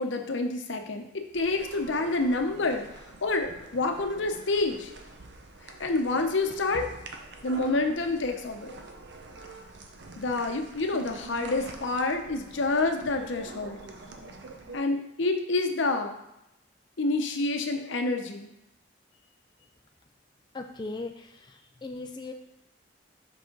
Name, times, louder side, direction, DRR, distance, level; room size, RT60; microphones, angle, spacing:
voice 1, 0.0-2.8 3.2-4.9 5.8-6.8 7.4-8.7 10.2-13.8 14.7-16.2 17.0-18.5, left 2 dB, 75° left, 5 dB, 0.7 m, -28 dB
sound 1, 1.3-14.8, right 3 dB, 65° right, 0.7 m, -46 dB
voice 2, 20.5-22.3, left 3 dB, 20° left, 3 dB, 0.3 m, -38 dB
5.7 x 5.0 x 3.8 m, 0.86 s
head